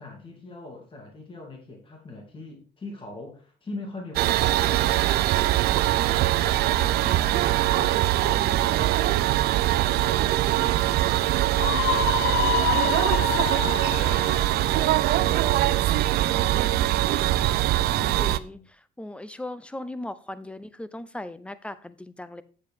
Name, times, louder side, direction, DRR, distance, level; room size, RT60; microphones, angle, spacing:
voice 1, 0.0-15.8 17.9-18.6, left 2 dB, 30° left, 2.5 m, -43 dB
sound 1, 4.1-18.4, right 14 dB, 70° right, 0.4 m, -22 dB
voice 2, 7.0-7.4 8.3-8.7 16.2-17.1 17.9-22.4, left 1 dB, 5° left, 0.5 m, -39 dB
Screaming, 11.6-14.5, left 13 dB, 70° left, 0.4 m, -27 dB
7.7 x 7.4 x 3.6 m
cardioid pair, 110°, 17 cm